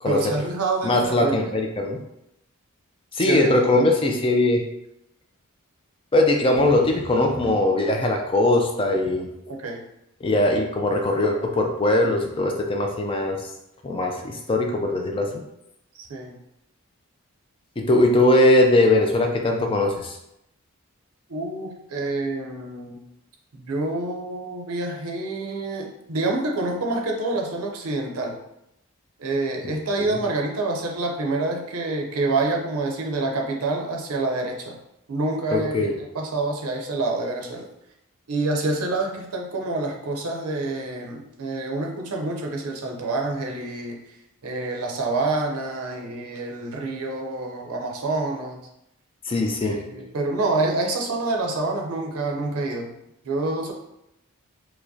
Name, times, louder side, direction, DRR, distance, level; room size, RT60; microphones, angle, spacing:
voice 1, 0.0-1.4 3.2-3.8 9.6-9.8 16.0-16.4 21.3-23.0 23.5-28.4 29.2-34.8 35.1-35.9 36.1-37.7 38.3-44.0 44.4-48.6 49.6-52.9 53.3-53.7, right 2 dB, 85° right, 1 dB, 0.6 m, -27 dB
voice 2, 0.8-2.0 3.1-4.6 6.1-9.3 10.2-13.4 13.8-15.4 17.8-20.2 29.6-29.7 30.0-30.2 35.5-35.9 49.3-49.8, left 2 dB, 25° left, 2 dB, 0.4 m, -20 dB
4.7 x 2.1 x 2.7 m, 0.83 s
head